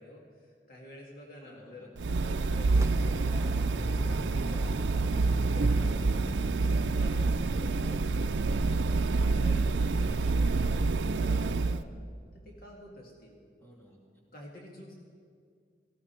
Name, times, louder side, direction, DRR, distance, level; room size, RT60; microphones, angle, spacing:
voice 1, 0.0-4.6 5.4-6.4 6.9-8.5 9.4-11.9 12.3-13.4 14.3-14.9, left 1 dB, 55° left, -1 dB, 1.9 m, -49 dB
voice 2, 1.4-1.9 4.6-4.9 13.6-14.2, equal, 15° left, -3 dB, 2.8 m, -55 dB
sound 1, 2.0-11.8, right 3 dB, 85° right, 0.5 m, -27 dB
sound 2, 2.7-8.0, right 1 dB, 15° right, 0.6 m, -41 dB
18.0 x 15.5 x 4.4 m, 2.1 s
head